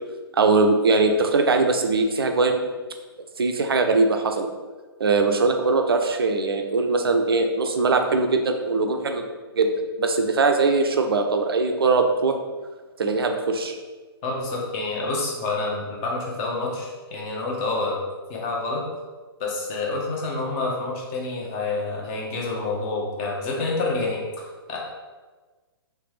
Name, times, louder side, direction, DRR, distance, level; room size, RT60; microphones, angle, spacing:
voice 1, 0.3-2.6 3.4-4.5 5.0-9.2 9.6-9.7 10.0-12.4 13.0-13.8, right 3 dB, 65° right, 5 dB, 0.4 m, -21 dB
voice 2, 14.2-18.8 19.4-24.8, left 3 dB, 30° left, -2 dB, 0.8 m, -28 dB
3.3 x 3.1 x 3.1 m, 1.3 s
figure-of-eight pair, 125°, 13 cm